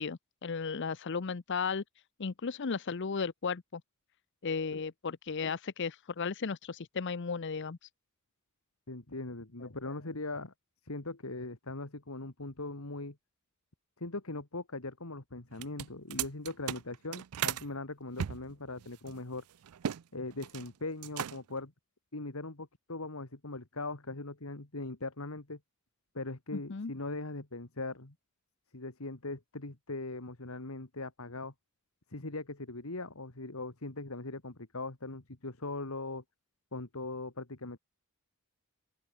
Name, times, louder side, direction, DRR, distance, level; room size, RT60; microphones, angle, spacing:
voice 1, 0.0-1.8 2.2-3.8 4.4-7.8 9.6-9.9 26.5-26.9, left 5 dB, 55° left, 0.7 m, -35 dB
voice 2, 8.9-10.5 10.9-13.2 14.0-19.4 20.1-21.7 22.1-25.6 26.1-28.1 28.7-31.5 32.1-36.2 36.7-37.8, left 2 dB, 70° left, 2.2 m, -40 dB
sound 1, 15.5-17.7 18.2-20.0 20.3-20.7 21.0-21.6, right 9 dB, 85° right, 0.4 m, -37 dB
open air
head